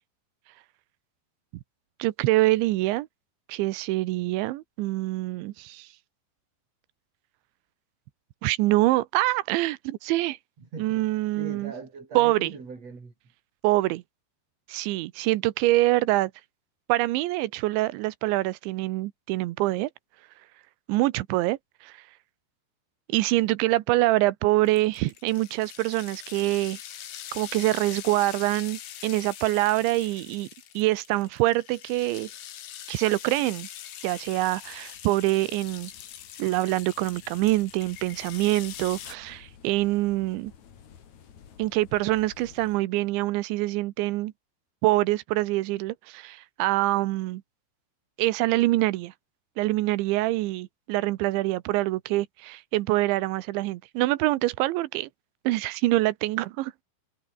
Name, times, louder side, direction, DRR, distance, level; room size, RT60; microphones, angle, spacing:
voice 1, 2.0-3.1 3.5-5.9 8.4-10.4 10.8-11.7 12.2-12.5 13.6-14.0 14.7-16.3 16.9-19.9 20.9-21.6 21.8-21.9 23.1-26.8 27.3-30.5 30.7-32.3 32.9-33.7 34.0-35.9 36.4-40.5 41.6-44.3 44.8-47.4 48.2-49.1 49.6-55.1 55.4-56.7, right 18 dB, 75° right, 3.1 m, -25 dB
voice 2, 10.6-11.1 11.4-13.1, right 4 dB, 30° right, 5.8 m, -39 dB
sound 1, 24.7-39.1, left 11 dB, 85° left, 5.4 m, -43 dB
sound 2, 34.0-42.8, left 8 dB, 45° left, 3.0 m, -54 dB
omnidirectional pair, 5.8 m